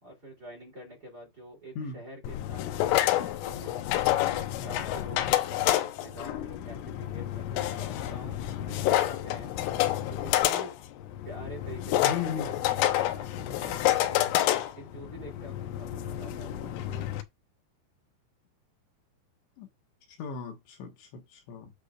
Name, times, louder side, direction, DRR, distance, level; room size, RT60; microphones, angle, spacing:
voice 1, 0.0-4.2 4.6-9.5 9.9-10.8 11.2-12.3 12.7-14.3 14.8-17.1, right 1 dB, 25° right, 3.0 m, -46 dB
sound 1, 2.2-17.2, left 14 dB, 85° left, 3.4 m, -29 dB
voice 2, 12.0-12.5 19.6-19.7 20.2-21.7, left 6 dB, 70° left, 3.6 m, -36 dB
9.6 x 6.6 x 2.5 m
omnidirectional pair, 5.6 m